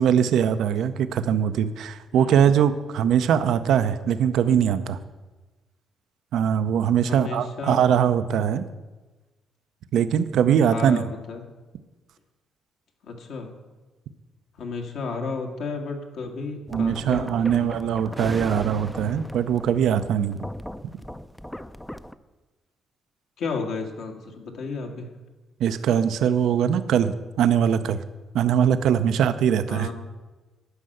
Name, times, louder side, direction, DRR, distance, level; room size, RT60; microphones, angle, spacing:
voice 1, 0.0-5.0 6.3-8.6 9.9-11.0 16.7-20.4 25.6-28.0 28.3-29.9, right 8 dB, 80° right, 11 dB, 0.5 m, -21 dB
voice 2, 7.1-7.8 10.7-11.4 13.0-13.5 14.6-17.7 23.4-25.1 29.7-29.9, left 4 dB, 75° left, 3 dB, 1.8 m, -33 dB
sound 1, 16.7-22.1, left 1 dB, 5° left, 0.4 m, -37 dB
11.5 x 5.4 x 7.7 m, 1.2 s
cardioid pair, 90°, 0 cm